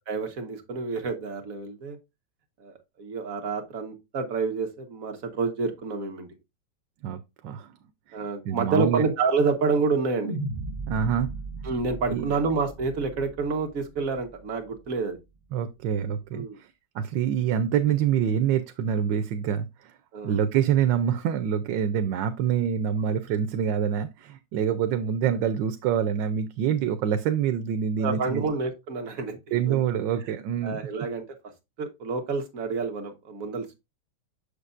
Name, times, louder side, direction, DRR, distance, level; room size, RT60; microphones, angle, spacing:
voice 1, 0.1-2.0 2.6-6.3 8.1-10.4 11.6-15.2 16.3-16.6 20.1-20.4 28.0-29.8 30.6-31.2 31.8-33.7, right 4 dB, 55° right, 1.5 m, -28 dB
voice 2, 7.0-7.7 8.1-8.2 8.5-9.0 10.9-11.3 12.1-12.3 15.5-19.9 20.2-28.4 29.5-30.8, right 8 dB, 90° right, 1.3 m, -26 dB
sound 1, 10.2-14.6, right 3 dB, 35° right, 1.3 m, -36 dB
6.7 x 6.6 x 2.5 m
omnidirectional pair, 1.9 m